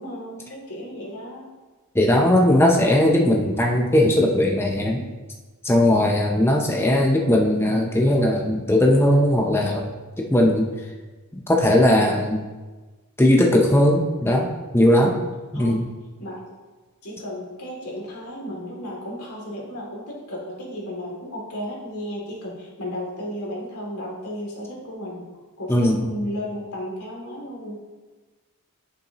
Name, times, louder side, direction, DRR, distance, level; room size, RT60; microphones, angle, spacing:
voice 1, 0.0-1.5 14.9-15.2 15.5-15.8 16.2-16.4 17.0-25.3 25.6-27.8, equal, 80° left, -4 dB, 2.6 m, -34 dB
voice 2, 1.9-5.1 5.6-9.9 10.2-10.7 11.5-12.4 13.2-15.1 15.5-15.9 25.7-26.1, left 1 dB, 10° left, 1 dB, 0.6 m, -18 dB
11.0 x 6.7 x 2.9 m, 1.3 s
head